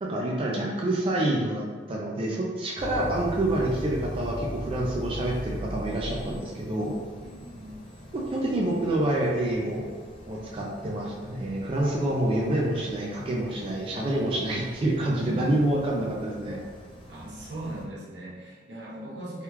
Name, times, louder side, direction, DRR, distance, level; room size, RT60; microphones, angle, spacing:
voice 1, 0.0-6.9 8.1-9.8 10.2-16.6, right 1 dB, 30° right, -3 dB, 0.4 m, -27 dB
sound 1, 2.8-17.8, equal, 30° left, 0.5 m, -41 dB
voice 2, 7.2-7.8 10.3-10.4 15.2-15.6 17.1-19.4, right 1 dB, 90° right, -5 dB, 0.9 m, -39 dB
3.5 x 2.3 x 2.8 m, 1.5 s
head